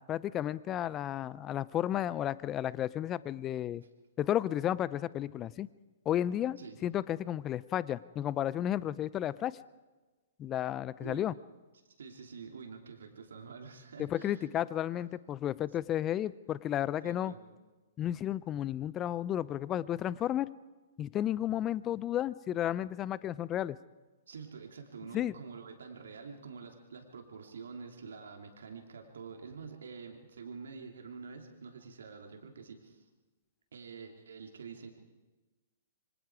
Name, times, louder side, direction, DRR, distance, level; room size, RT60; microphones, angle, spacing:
voice 1, 0.0-3.8 4.2-5.7 6.1-9.6 10.4-11.3 14.0-17.3 18.0-20.5 21.0-23.8 25.1-25.3, left 11 dB, 25° left, 19 dB, 0.6 m, -33 dB
voice 2, 11.0-11.3 12.0-14.4 17.0-17.4 24.3-33.0 33.7-34.9, right 5 dB, 70° right, 3 dB, 3.0 m, -47 dB
26.5 x 24.0 x 4.8 m, 1.2 s
figure-of-eight pair, 115°, 0 cm